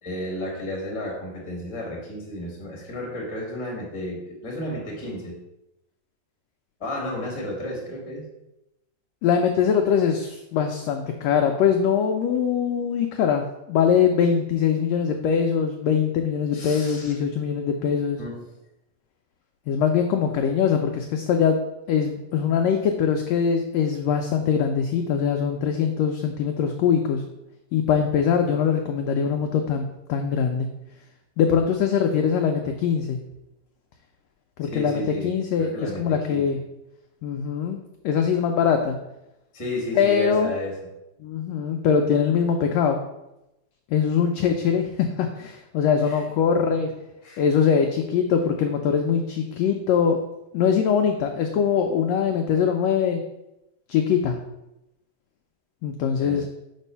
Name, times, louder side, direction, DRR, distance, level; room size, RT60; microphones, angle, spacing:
voice 1, 0.0-5.3 6.8-8.2 16.5-17.1 18.2-18.4 34.6-36.4 39.5-40.8 46.0-46.2 46.5-46.6 47.2-47.4 56.2-56.4, left 1 dB, 15° left, -2 dB, 1.0 m, -32 dB
voice 2, 9.2-18.2 19.7-27.2 27.7-30.7 31.4-33.2 34.6-36.6 37.2-37.8 38.0-39.0 39.9-40.5 41.2-43.0 43.9-46.9 47.4-50.2 50.5-53.2 53.9-54.4 55.8-56.4, left 7 dB, 80° left, 4 dB, 1.5 m, -22 dB
5.3 x 4.1 x 5.5 m, 0.91 s
omnidirectional pair, 3.4 m